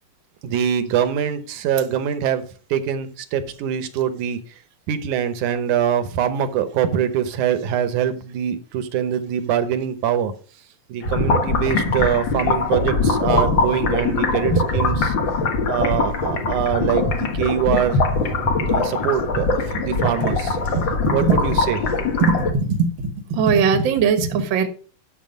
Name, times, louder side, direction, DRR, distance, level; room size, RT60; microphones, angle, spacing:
voice 1, 0.4-2.4 2.7-4.4 4.9-10.3 10.9-15.2 15.7-18.0 18.6-20.7 21.1-22.0, right 9 dB, 70° right, 10 dB, 2.2 m, -23 dB
sound 1, 11.0-22.5, left 3 dB, 50° left, 1.4 m, -21 dB
voice 2, 23.3-24.7, right 6 dB, 50° right, 6 dB, 1.5 m, -18 dB
11.5 x 6.5 x 5.2 m, 0.39 s
omnidirectional pair, 3.9 m